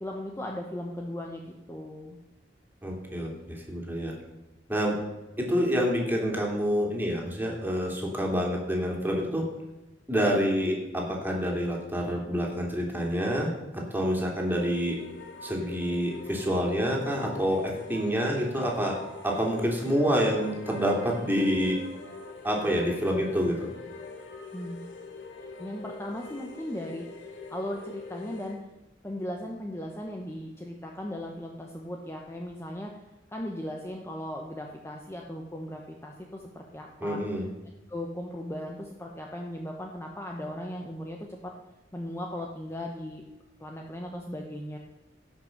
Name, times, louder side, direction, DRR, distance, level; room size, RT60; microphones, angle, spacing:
voice 1, 0.0-2.2 24.5-24.8 25.6-28.6 29.0-33.1 33.3-37.2 37.9-41.5 41.9-43.2 43.6-44.8, left 1 dB, 15° left, 0 dB, 1.0 m, -37 dB
voice 2, 2.8-4.1 4.7-5.0 5.4-9.5 10.1-15.0 15.4-19.0 19.2-21.8 22.4-23.7 37.0-37.4, equal, 10° right, -1 dB, 2.8 m, -27 dB
sound 1, 14.4-28.6, left 3 dB, 75° left, 1.8 m, -44 dB
17.0 x 6.0 x 6.6 m, 1.0 s
head